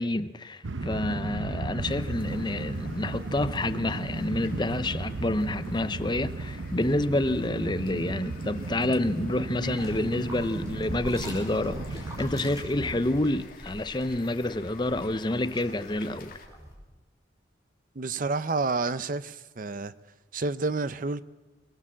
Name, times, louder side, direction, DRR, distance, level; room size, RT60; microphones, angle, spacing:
voice 1, 0.0-16.4, left 1 dB, 25° left, 0.6 m, -28 dB
sound 1, 0.6-13.4, right 2 dB, 80° right, 0.8 m, -35 dB
sound 2, 1.8-16.5, left 4 dB, 45° left, 2.0 m, -51 dB
sound 3, 9.5-16.7, equal, 15° right, 5.0 m, -44 dB
voice 2, 18.0-19.9 20.3-21.2, right 3 dB, 45° right, 0.6 m, -29 dB
22.5 x 19.0 x 7.4 m
head